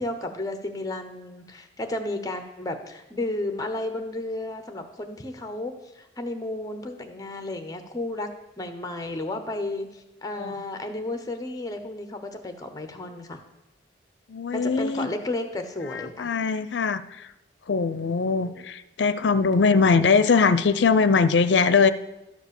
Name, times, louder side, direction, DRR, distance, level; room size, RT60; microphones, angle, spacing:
voice 1, 0.0-8.3 8.6-13.4 14.5-16.3 18.4-18.7, left 2 dB, 20° left, 7 dB, 0.9 m, -33 dB
voice 2, 14.3-15.1 16.2-17.0 17.7-21.9, left 5 dB, 70° left, 13 dB, 0.5 m, -21 dB
12.0 x 5.1 x 7.0 m, 0.96 s
head